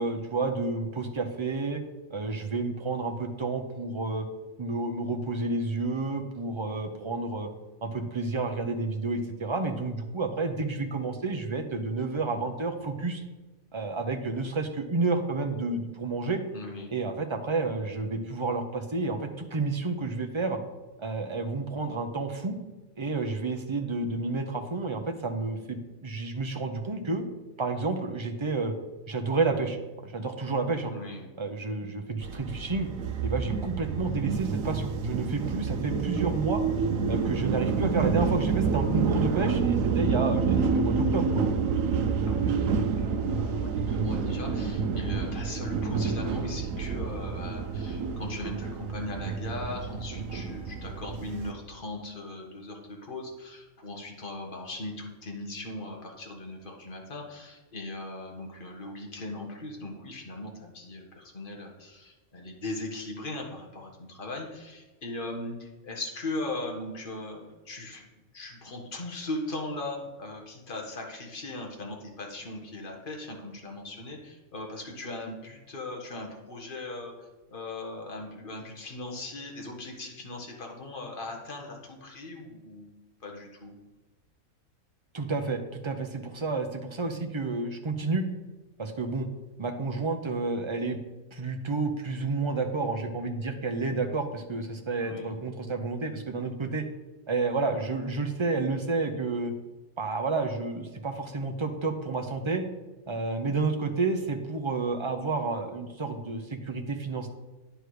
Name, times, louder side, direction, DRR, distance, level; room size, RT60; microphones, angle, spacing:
voice 1, 0.0-1.8 2.1-4.3 4.6-7.5 7.8-13.2 13.7-16.4 16.9-20.6 21.0-22.6 23.0-27.2 27.6-28.7 29.1-30.9 31.4-32.9 33.2-36.6 37.1-41.4 85.1-88.3 88.8-89.3 89.6-91.0 91.3-96.9 97.3-99.5 100.0-102.6 103.1-107.3, right 3 dB, 25° right, 5 dB, 0.7 m, -30 dB
voice 2, 16.5-17.0 30.9-31.3 42.2-68.1 68.3-82.9 83.2-83.7 95.0-95.4, left 2 dB, 35° left, 0 dB, 1.7 m, -39 dB
sound 1, 32.2-51.5, right 5 dB, 70° right, 1.0 m, -28 dB
9.8 x 6.5 x 4.9 m, 1.2 s
omnidirectional pair, 1.5 m